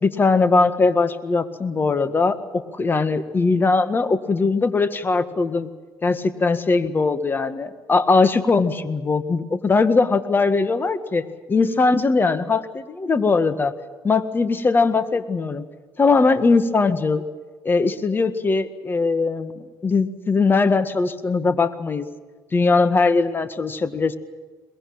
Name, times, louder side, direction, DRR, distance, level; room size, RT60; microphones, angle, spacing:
voice 1, 0.0-5.7 6.0-11.2 11.5-13.7 14.0-15.6 16.0-17.2 17.7-22.1 22.5-24.2, left 4 dB, 30° left, 10 dB, 1.8 m, -20 dB
23.0 x 21.0 x 8.9 m, 1.3 s
cardioid pair, 90°, 8 cm